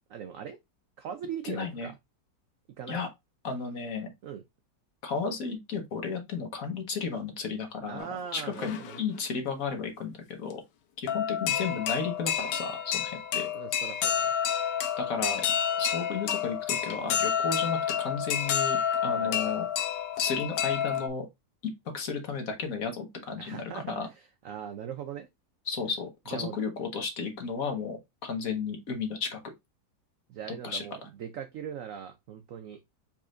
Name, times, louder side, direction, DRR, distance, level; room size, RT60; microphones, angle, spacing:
voice 1, 0.1-0.6 1.0-2.0 2.8-3.0 4.2-4.4 7.9-9.0 13.5-14.3 19.1-19.5 23.4-25.3 26.3-26.6 30.3-32.8, right 8 dB, 85° right, 0.7 m, -40 dB
voice 2, 1.4-1.9 2.9-3.1 3.4-4.1 5.0-8.1 8.3-10.6 11.0-13.5 15.0-15.4 15.8-19.6 20.2-21.2 21.9-24.1 25.7-29.5 30.6-30.9, left 5 dB, 55° left, 1.3 m, -33 dB
sound 1, 8.0-8.1 8.4-9.2 10.5-10.6 11.1-21.1, left 8 dB, 70° left, 1.3 m, -29 dB
4.8 x 4.2 x 2.4 m
omnidirectional pair, 2.0 m